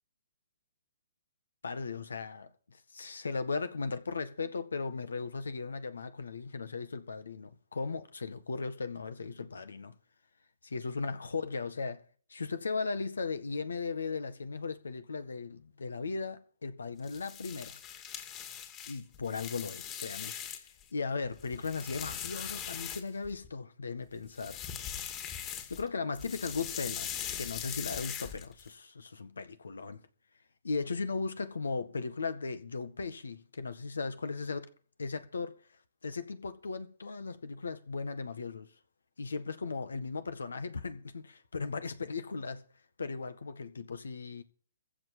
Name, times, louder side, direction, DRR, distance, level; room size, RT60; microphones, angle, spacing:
voice 1, 1.6-10.0 10.6-12.0 12.3-17.8 18.9-20.4 20.9-24.7 25.7-30.0 30.6-34.7 35.0-35.6 36.0-38.7 39.2-42.6 43.0-44.4, left 4 dB, 85° left, 1.7 m, -37 dB
sound 1, 17.0-20.8 21.2-23.5 24.2-25.9 26.1-28.7, left 9 dB, 25° left, 2.2 m, -41 dB
15.0 x 5.4 x 9.5 m
hypercardioid pair, 140°, 0 cm